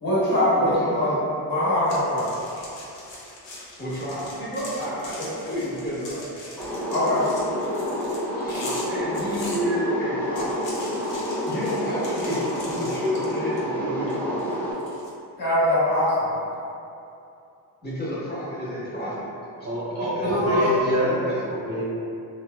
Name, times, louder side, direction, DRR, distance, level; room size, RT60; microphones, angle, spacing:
voice 1, 0.0-1.1 1.5-2.3 5.2-5.3 6.9-7.2 15.4-16.3 20.2-20.7, left 1 dB, 50° left, -10 dB, 1.2 m, -22 dB
voice 2, 0.6-1.2 3.8-6.3 8.3-10.7 11.4-14.5 17.8-19.3 20.1-21.4, equal, 20° left, -9 dB, 1.1 m, -30 dB
sound 1, 1.8-9.6 10.2-13.7 14.1-15.1, left 2 dB, 75° left, 0.7 m, -41 dB
sound 2, 6.6-14.7, equal, 5° left, 0.6 m, -28 dB
voice 3, 19.6-21.1 21.5-21.8, equal, 35° right, -7 dB, 0.7 m, -25 dB
3.0 x 2.1 x 2.3 m, 2.7 s
cardioid pair, 65°, 45 cm